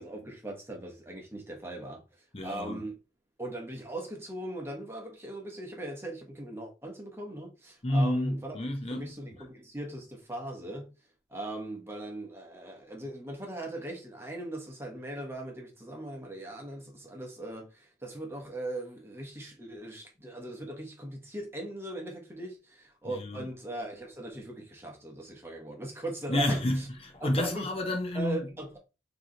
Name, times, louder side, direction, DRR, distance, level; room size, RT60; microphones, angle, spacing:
voice 1, 0.0-2.0 2.4-2.9 3.4-8.6 8.9-10.9 11.3-26.6 27.2-27.7 28.1-28.8, right 1 dB, 15° right, 1.1 m, -39 dB
voice 2, 2.3-2.8 7.8-9.1 9.4-9.5 23.0-23.5 26.3-28.5, left 1 dB, 35° left, 0.7 m, -30 dB
4.7 x 2.9 x 3.8 m
head